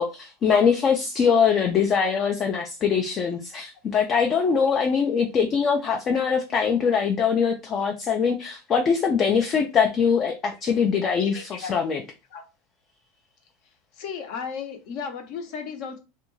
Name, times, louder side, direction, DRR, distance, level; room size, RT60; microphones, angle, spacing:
voice 1, 0.0-12.0, left 6 dB, 35° left, 0.4 m, -22 dB
voice 2, 11.0-11.8 12.3-12.4 13.9-16.0, left 6 dB, 55° left, 0.7 m, -35 dB
2.5 x 2.2 x 3.0 m
supercardioid pair, 130°, 0 cm